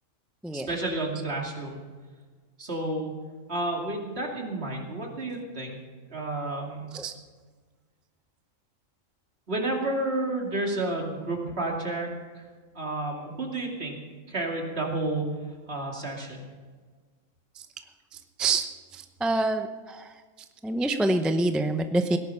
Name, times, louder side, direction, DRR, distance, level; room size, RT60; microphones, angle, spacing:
voice 1, 0.5-1.8 2.6-3.1 3.5-5.8 6.1-6.9 9.5-12.1 12.3-12.4 12.7-14.0 14.3-15.3 15.7-16.5, right 2 dB, 55° right, 0 dB, 2.8 m, -31 dB
voice 2, 18.9-20.0 20.6-22.2, right 2 dB, ahead, 7 dB, 0.4 m, -26 dB
17.5 x 11.0 x 5.6 m, 1.4 s
omnidirectional pair, 1.3 m